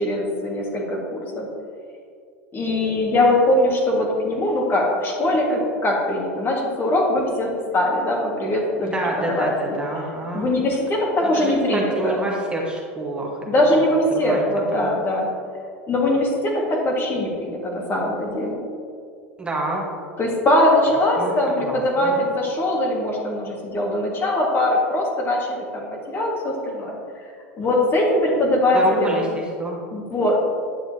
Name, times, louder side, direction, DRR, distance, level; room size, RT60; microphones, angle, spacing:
voice 1, 0.0-1.5 2.5-8.9 9.3-9.8 10.3-12.2 13.5-15.3 15.9-18.6 20.2-27.0 27.6-29.2 29.9-30.4, left 1 dB, 30° left, -1 dB, 1.7 m, -21 dB
voice 2, 8.8-10.5 11.2-13.4 13.7-13.8 14.1-14.4 14.7-14.9 19.4-19.8 20.9-21.3 21.6-22.2 28.7-29.8, right 2 dB, 15° right, -3 dB, 1.3 m, -28 dB
9.4 x 6.7 x 2.8 m, 2.3 s
hypercardioid pair, 95°, 7 cm